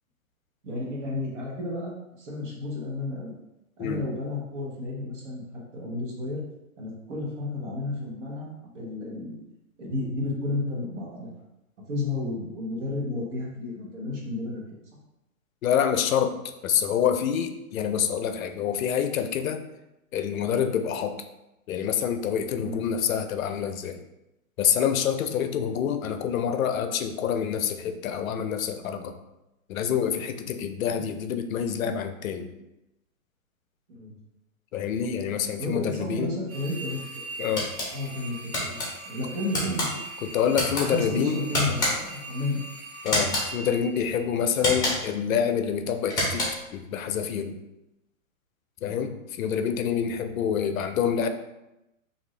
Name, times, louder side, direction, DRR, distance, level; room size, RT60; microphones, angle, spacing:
voice 1, 0.6-3.3 3.8-5.4 5.7-6.4 6.8-9.4 9.8-11.3 11.9-14.6 22.6-22.8 25.4-25.5 30.8-31.0 33.9-34.1 35.6-37.0 37.9-38.8 39.1-40.3 40.8-42.6 48.9-49.1, left 2 dB, 55° right, -3 dB, 1.2 m, -32 dB
voice 2, 15.6-19.6 20.1-21.2 21.7-24.0 24.6-29.2 29.7-32.6 34.7-36.3 37.4-37.7 40.3-41.4 43.0-46.5 46.7-47.6 48.8-51.3, left 8 dB, 75° left, 8 dB, 0.5 m, -27 dB
sound 1, 36.5-44.7, right 2 dB, 85° right, 1.2 m, -41 dB
sound 2, 37.6-37.9 38.5-38.9 39.5-39.9 40.5-40.9 41.5-42.2 43.1-43.5 44.6-45.1 46.0-46.7, left 1 dB, 10° left, 0.6 m, -27 dB
2.7 x 2.5 x 3.1 m, 0.92 s
hypercardioid pair, 140°, 42 cm